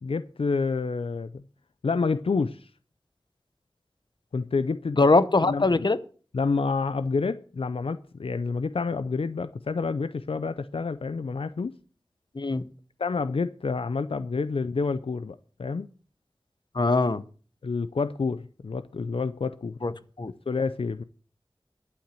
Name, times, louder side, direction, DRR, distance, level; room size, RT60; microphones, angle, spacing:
voice 1, 0.0-1.4 1.8-2.7 4.3-5.0 5.4-5.8 6.3-11.7 13.0-15.9 17.6-19.8 20.5-21.0, left 4 dB, 80° left, 0.5 m, -28 dB
voice 2, 5.0-6.0 12.3-12.6 16.7-17.2 19.8-19.9 20.2-20.3, left 3 dB, 55° left, 0.8 m, -21 dB
11.5 x 5.9 x 7.6 m
wide cardioid pair, 45°, 9 cm